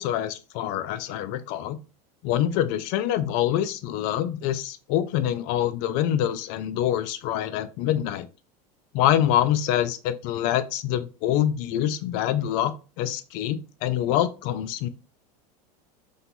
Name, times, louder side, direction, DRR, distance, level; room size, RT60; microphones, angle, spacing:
voice 1, 0.0-1.8 2.2-8.3 8.9-14.9, left 11 dB, 55° left, 0.4 m, -25 dB
2.5 x 2.3 x 2.8 m
hypercardioid pair, 100°, 20 cm